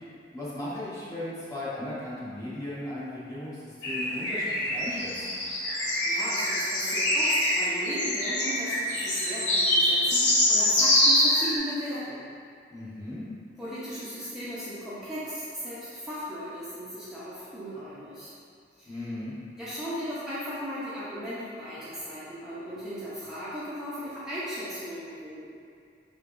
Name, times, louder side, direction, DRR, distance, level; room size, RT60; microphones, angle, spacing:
voice 1, 0.3-5.4 12.7-13.2 18.8-19.3, left 1 dB, 20° left, -9 dB, 1.0 m, -37 dB
sound 1, 3.8-11.6, left 1 dB, 85° left, 1.1 m, -25 dB
voice 2, 6.0-12.2 13.6-18.3 18.8-19.0 19.6-25.5, equal, 5° right, -13 dB, 0.7 m, -36 dB
5.5 x 3.4 x 2.6 m, 2.3 s
head